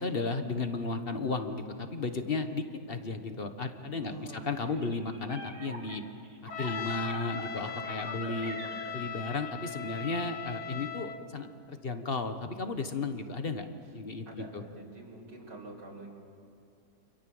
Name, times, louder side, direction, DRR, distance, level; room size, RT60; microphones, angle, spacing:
voice 1, 0.0-6.0 6.6-8.6 8.9-13.7 13.9-14.6, left 3 dB, 35° left, 8 dB, 1.4 m, -34 dB
voice 2, 4.0-4.9 8.0-8.9 14.3-16.1, right 1 dB, 80° right, -4 dB, 4.6 m, -47 dB
sound 1, 4.7-10.5, right 2 dB, 45° right, 3.1 m, -46 dB
Trumpet, 6.5-11.2, left 7 dB, 70° left, 1.6 m, -39 dB
28.5 x 26.5 x 7.9 m, 2.5 s
omnidirectional pair, 1.9 m